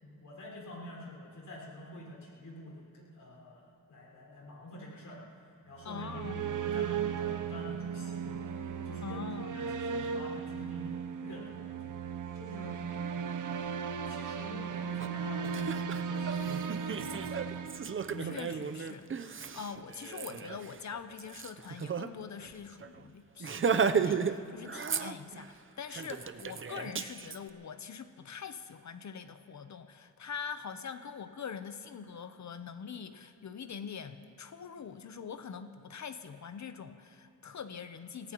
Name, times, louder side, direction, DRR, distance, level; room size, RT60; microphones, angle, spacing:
voice 1, 0.0-5.2 5.7-9.2 9.5-11.9 12.3-12.8 13.1-13.7 14.1-17.7 18.1-18.4, left 1 dB, 75° left, -3 dB, 5.3 m, -47 dB
sound 1, 5.7-18.6, right 7 dB, 65° right, 0.8 m, -36 dB
voice 2, 5.8-6.4 9.0-9.6 18.2-38.3, left 6 dB, 60° left, 10 dB, 0.8 m, -44 dB
Laughter, 15.0-15.1 15.4-22.1 22.4-22.5 22.8-23.0 23.4-24.4 24.7-25.5 25.9-27.4, right 6 dB, 40° right, 0.7 m, -34 dB
25.5 x 18.0 x 3.0 m, 2.6 s
cardioid pair, 75°, 33 cm